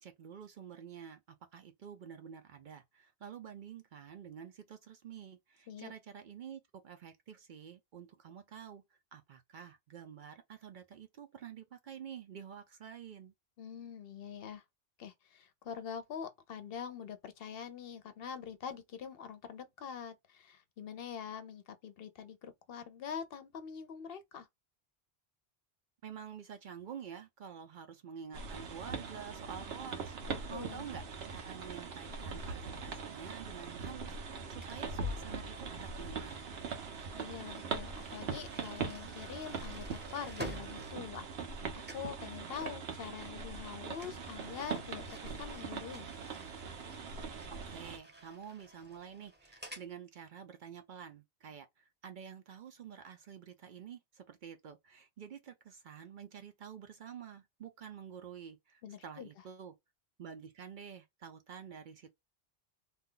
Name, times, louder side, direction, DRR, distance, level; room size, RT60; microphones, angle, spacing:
voice 1, 0.0-8.8 9.1-13.3 26.0-31.0 31.3-36.5 47.5-59.7 60.2-62.1, right 7 dB, 60° right, 0.6 m, -49 dB
voice 2, 13.6-14.6 15.0-24.5 30.5-30.9 37.2-39.8 40.1-46.1 58.8-59.3, left 7 dB, 65° left, 0.8 m, -44 dB
sound 1, 28.3-48.0, right 4 dB, 75° right, 1.0 m, -42 dB
sound 2, 34.6-41.6 41.8-42.2 44.0-49.9, right 1 dB, 10° right, 0.7 m, -51 dB
2.7 x 2.2 x 3.7 m
omnidirectional pair, 1.1 m